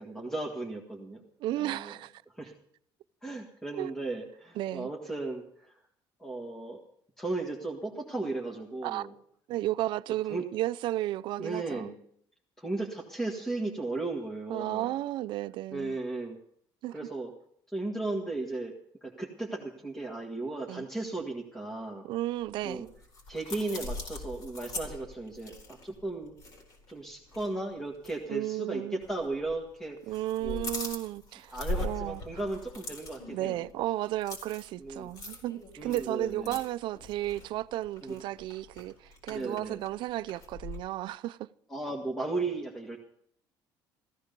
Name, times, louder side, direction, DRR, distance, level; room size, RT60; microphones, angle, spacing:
voice 1, 0.0-1.2 1.5-1.9 2.3-2.5 3.2-5.8 6.2-6.8 7.2-9.1 10.3-10.4 11.4-12.0 12.6-14.9 15.7-16.4 16.9-17.3 17.7-18.7 19.0-22.0 22.6-22.9 23.3-26.3 26.9-30.1 30.4-30.7 31.5-33.6 34.8-35.1 35.8-36.6 38.0-38.1 39.3-39.8 41.7-43.0, right 2 dB, 5° left, 1.7 m, -35 dB
voice 2, 1.4-2.1 3.7-3.9 4.6-4.9 8.8-9.1 9.5-11.9 14.5-16.0 16.8-17.0 20.7-20.9 22.0-22.9 28.3-29.0 30.1-32.2 33.3-41.5, right 15 dB, 65° right, 0.5 m, -33 dB
sound 1, 22.5-27.0 27.3-27.5 27.9-28.1 29.0-29.6 29.9-40.8, left 2 dB, 50° left, 4.5 m, -41 dB
15.5 x 14.5 x 5.3 m
cardioid pair, 155°, 9 cm